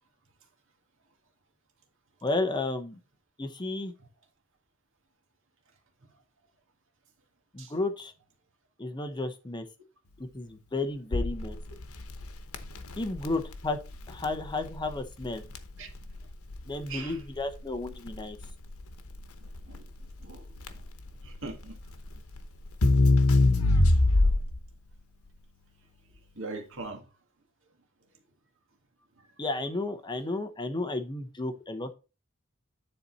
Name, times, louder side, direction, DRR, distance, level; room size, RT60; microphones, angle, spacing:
voice 1, 2.2-3.0 3.4-3.9 7.5-8.1 8.8-9.7 10.3-11.6 13.0-13.8 14.1-15.4 16.7-18.4 29.4-31.9, left 2 dB, 20° left, 0.8 m, -32 dB
Crackle, 11.1-24.7, left 2 dB, 85° left, 1.0 m, -26 dB
voice 2, 16.9-17.2 19.4-19.8 20.2-20.5 20.7-20.8 21.2-21.8 26.4-27.1 29.2-29.3, right 3 dB, 65° right, 1.9 m, -41 dB
9.9 x 4.2 x 4.1 m
head